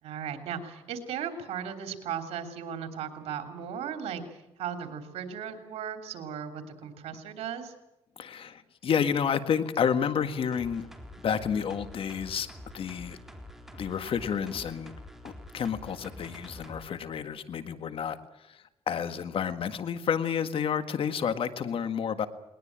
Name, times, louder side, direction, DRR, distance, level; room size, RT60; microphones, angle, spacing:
voice 1, 0.0-4.2 4.6-7.7, right 8 dB, 85° right, 6 dB, 3.2 m, -36 dB
voice 2, 8.2-10.9 11.2-12.5 12.7-13.2 13.7-14.9 15.2-18.2 18.5-18.6 18.9-22.3, left 7 dB, 60° left, 11 dB, 1.7 m, -30 dB
sound 1, 10.5-16.8 17.2-17.3, left 1 dB, 5° right, 3.8 m, -47 dB
20.5 x 20.5 x 8.8 m, 0.91 s
cardioid pair, 80°, 10 cm